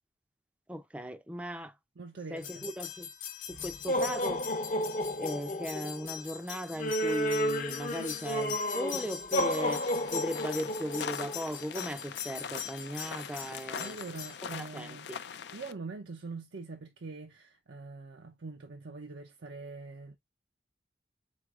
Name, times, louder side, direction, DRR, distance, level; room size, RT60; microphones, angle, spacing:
voice 1, 0.7-1.7 2.3-3.1 3.5-4.4 5.2-9.8 10.1-14.0 14.4-15.2, equal, 5° right, 0.4 m, -37 dB
voice 2, 2.0-2.6 13.8-15.1 15.5-20.2, right 3 dB, 80° right, 0.6 m, -43 dB
sound 1, 2.4-14.3, left 1 dB, 45° left, 0.8 m, -33 dB
sound 2, 9.5-15.7, left 7 dB, 70° left, 0.4 m, -42 dB
4.7 x 3.9 x 2.3 m
head